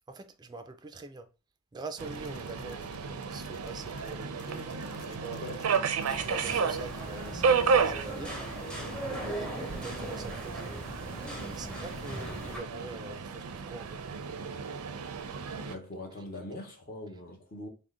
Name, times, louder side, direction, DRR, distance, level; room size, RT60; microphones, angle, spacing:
voice 1, 0.1-1.3 1.7-4.6 5.0-5.4 6.2-8.3 9.0-10.7 11.5-14.0, right 3 dB, 20° right, 0.3 m, -44 dB
sound 1, 2.0-6.2 6.4-7.8, left 4 dB, 80° left, 0.4 m, -50 dB
Subway metro underground, 2.0-15.8, right 5 dB, 85° right, 0.5 m, -33 dB
voice 2, 5.4-5.7 15.6-17.7, left 1 dB, 45° left, 0.9 m, -42 dB
sound 2, 6.1-12.6, right 1 dB, 5° left, 0.7 m, -40 dB
3.6 x 2.1 x 3.7 m
head